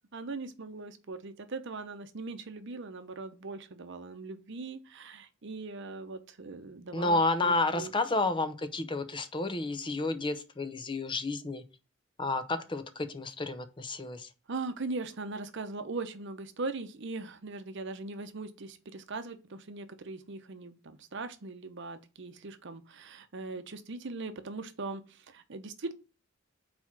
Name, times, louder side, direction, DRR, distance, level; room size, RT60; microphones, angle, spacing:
voice 1, 0.1-7.9 14.5-25.9, right 3 dB, 60° right, 0.7 m, -40 dB
voice 2, 6.9-11.6 12.2-14.3, left 2 dB, 25° left, 0.6 m, -31 dB
4.6 x 4.3 x 5.8 m
head